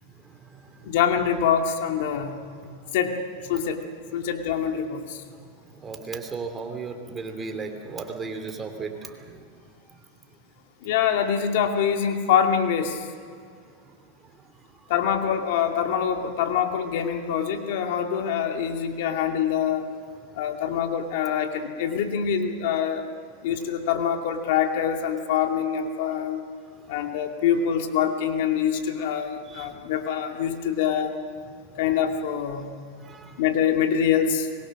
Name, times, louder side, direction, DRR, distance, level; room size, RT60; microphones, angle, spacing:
voice 1, 0.2-1.0 2.5-3.0 5.3-10.0 13.7-14.9 20.3-20.4 26.7-27.1 29.4-29.7 30.5-30.6 31.5-31.6 32.9-33.4, right 4 dB, 20° right, 5 dB, 2.9 m, -38 dB
voice 2, 0.8-2.4 2.9-3.2 3.5-3.8 4.1-5.2 10.8-13.1 14.9-19.9 20.3-23.0 23.4-26.4 26.9-31.1 31.8-32.7 33.4-34.5, left 8 dB, 70° left, 4 dB, 2.4 m, -25 dB
25.0 x 22.0 x 6.5 m, 2.1 s
supercardioid pair, 130°, 0 cm